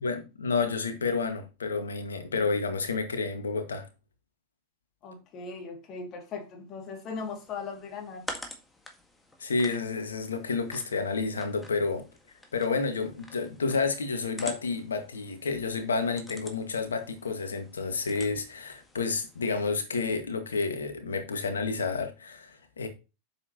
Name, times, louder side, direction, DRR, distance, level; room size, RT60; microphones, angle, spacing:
voice 1, 0.0-3.9 9.4-12.0 12.5-22.9, left 4 dB, 70° left, 2.0 m, -30 dB
voice 2, 5.0-8.3, left 4 dB, 35° left, 2.6 m, -39 dB
sound 1, 7.2-19.7, left 1 dB, 10° left, 1.9 m, -47 dB
9.4 x 7.4 x 3.0 m
figure-of-eight pair, 90°, 0 cm